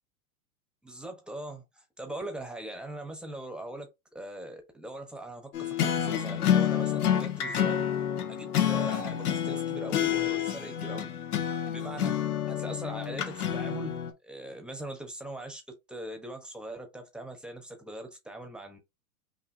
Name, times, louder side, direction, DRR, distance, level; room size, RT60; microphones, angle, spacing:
voice 1, 0.8-7.8 8.3-11.1 11.4-12.2 12.5-18.8, right 1 dB, ahead, 1.0 m, -41 dB
sound 1, 5.5-14.1, left 10 dB, 75° left, 1.4 m, -28 dB
5.6 x 2.9 x 2.7 m
hypercardioid pair, 135°, 45 cm